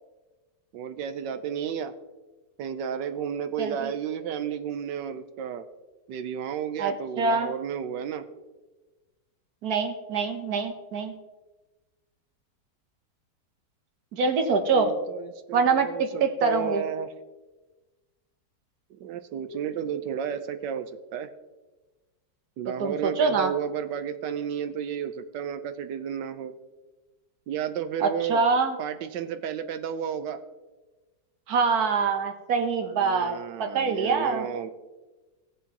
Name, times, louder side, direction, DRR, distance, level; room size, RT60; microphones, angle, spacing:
voice 1, 0.7-1.9 2.6-5.7 6.1-8.3 14.7-17.1 18.9-21.3 22.6-26.5 27.5-28.4 28.8-30.4 32.8-34.7, right 8 dB, 85° right, 10 dB, 1.3 m, -32 dB
voice 2, 3.6-3.9 6.8-7.5 9.6-11.1 14.1-14.9 15.5-16.8 22.8-23.5 28.0-28.8 31.5-34.5, right 4 dB, 60° right, 6 dB, 1.4 m, -25 dB
17.5 x 7.1 x 2.9 m, 1.2 s
omnidirectional pair, 1.9 m